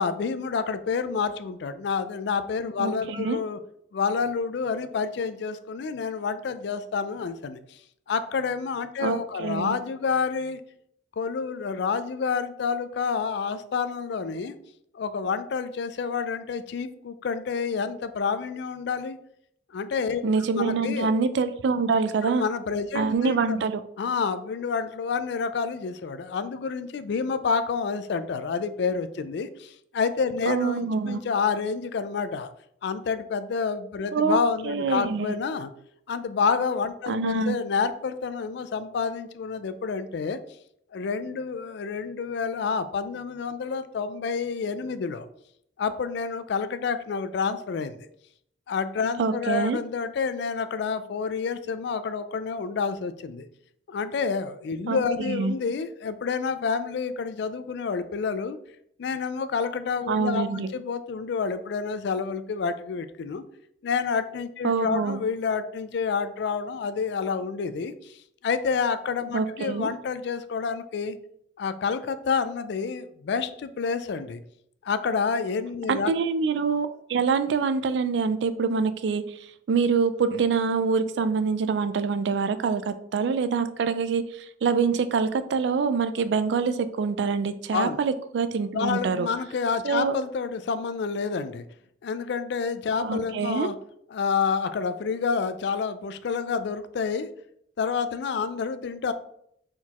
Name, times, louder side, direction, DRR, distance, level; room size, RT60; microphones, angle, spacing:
voice 1, 0.0-3.6 3.9-7.8 8.1-10.6 11.2-14.6 14.9-19.2 19.7-20.2 20.6-21.1 22.2-23.6 24.0-32.5 32.8-35.7 36.1-40.4 40.9-45.3 45.8-48.1 48.7-53.5 53.9-58.6 59.0-63.4 63.8-68.2 68.4-71.2 71.6-74.4 74.8-76.1 87.7-88.0 88.7-91.6 92.0-93.7 94.1-97.3 97.8-99.1, left 5 dB, 65° left, 12 dB, 0.3 m, -28 dB
voice 2, 2.8-3.4 9.0-9.8 20.2-22.4 22.9-23.8 30.5-31.2 34.1-34.4 34.6-35.3 37.1-37.6 49.2-49.8 54.9-55.5 60.1-60.7 64.6-65.2 69.3-69.9 75.9-89.3 89.8-90.2 93.0-93.7, right 5 dB, 65° right, 11 dB, 0.3 m, -25 dB
4.3 x 3.7 x 2.9 m, 0.71 s
head